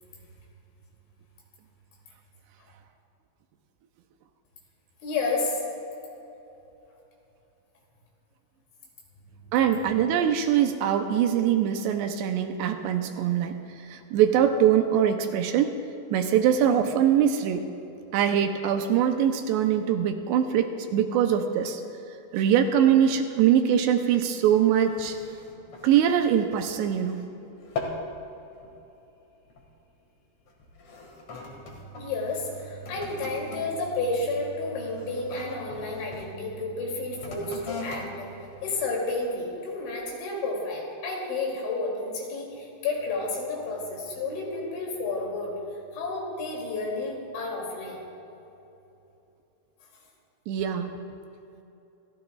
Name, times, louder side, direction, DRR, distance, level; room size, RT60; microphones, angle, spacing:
voice 1, 5.0-5.6 31.6-31.7 32.0-38.3 38.6-45.5 45.9-48.0, left 3 dB, 80° left, -2 dB, 5.2 m, -31 dB
voice 2, 9.5-15.7 16.1-17.7 18.1-21.8 22.3-25.2 25.8-27.2 50.5-51.0, right 9 dB, 80° right, 6 dB, 2.7 m, -23 dB
sound 1, 24.7-27.3 27.6-28.1 28.5-28.8 29.5-29.7 30.5-36.3 37.1-39.4 40.0-40.1, left 3 dB, 50° left, 2.2 m, -41 dB
28.5 x 14.5 x 2.4 m, 2.9 s
omnidirectional pair, 5.3 m